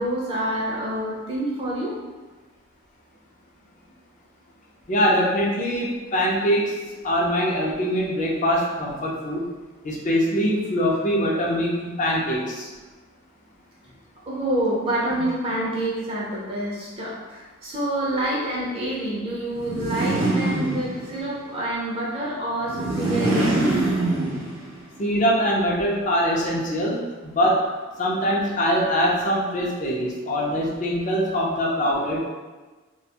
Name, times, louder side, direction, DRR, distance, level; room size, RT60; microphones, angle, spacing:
voice 1, 0.0-1.9 14.3-23.7, right 1 dB, 30° right, -6 dB, 0.5 m, -27 dB
voice 2, 4.9-6.8 7.0-9.5 9.8-12.7 15.1-15.2 25.0-27.7 28.0-32.3, equal, 40° left, -3 dB, 0.5 m, -23 dB
sound 1, 19.5-21.3 22.6-24.8, right 2 dB, 85° right, 0.6 m, -24 dB
2.4 x 2.2 x 2.7 m, 1.3 s
head